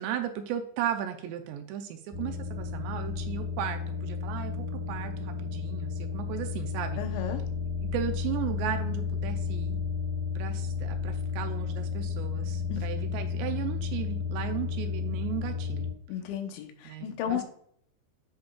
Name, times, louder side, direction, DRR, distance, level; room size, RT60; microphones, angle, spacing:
voice 1, 0.0-7.0 7.9-9.8 10.4-15.9 16.9-17.4, right 10 dB, 85° right, 7 dB, 2.7 m, -36 dB
sound 1, 2.1-15.9, left 6 dB, 15° right, 1.5 m, -32 dB
voice 2, 7.0-7.4 12.7-12.8 16.1-17.4, left 9 dB, 85° left, 5 dB, 3.3 m, -34 dB
10.5 x 5.3 x 2.3 m, 0.65 s
omnidirectional pair, 5.2 m